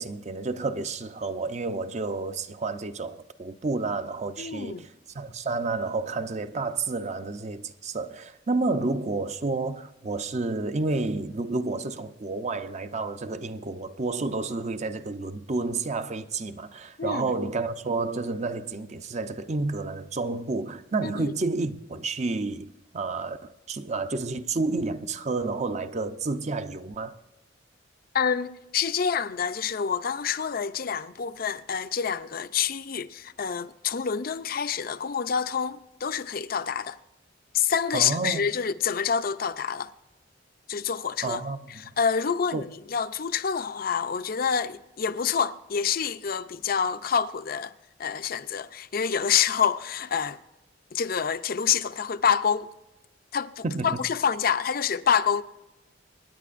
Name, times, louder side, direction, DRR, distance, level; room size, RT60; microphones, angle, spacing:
voice 1, 0.0-4.9 5.1-27.1 37.9-38.4 41.2-41.9 42.5-42.6 53.6-54.0, right 3 dB, 40° right, 0.6 m, -30 dB
voice 2, 4.4-4.9 17.0-17.4 21.0-21.3 28.1-37.0 37.5-39.9 40.7-41.4 42.0-47.7 48.0-50.4 50.9-52.7 53.3-55.4, left 7 dB, 55° left, 0.5 m, -27 dB
25.5 x 10.0 x 2.5 m
head